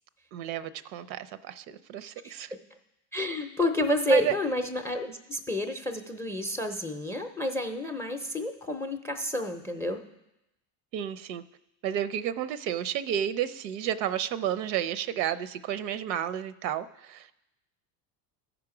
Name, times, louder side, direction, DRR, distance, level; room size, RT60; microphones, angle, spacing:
voice 1, 0.3-2.5 3.8-4.3 10.9-11.4 11.8-17.4, right 10 dB, 85° right, 14 dB, 0.6 m, -31 dB
voice 2, 3.1-10.0, left 1 dB, 5° left, 7 dB, 0.4 m, -29 dB
13.5 x 5.0 x 4.8 m, 0.90 s
supercardioid pair, 100°, 50 cm